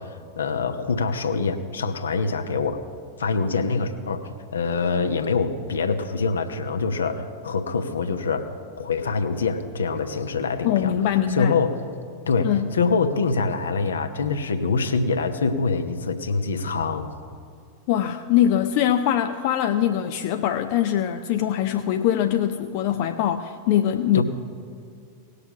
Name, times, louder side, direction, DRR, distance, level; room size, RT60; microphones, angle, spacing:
voice 1, 0.0-2.8 3.2-8.5 8.8-10.9 11.3-11.8 12.3-17.1 24.1-24.2, left 4 dB, 70° left, 7 dB, 0.9 m, -25 dB
voice 2, 10.6-11.6 12.4-12.7 17.9-24.2, left 10 dB, 45° left, 7 dB, 0.5 m, -22 dB
18.5 x 6.7 x 6.1 m, 2.2 s
figure-of-eight pair, 90°, 0 cm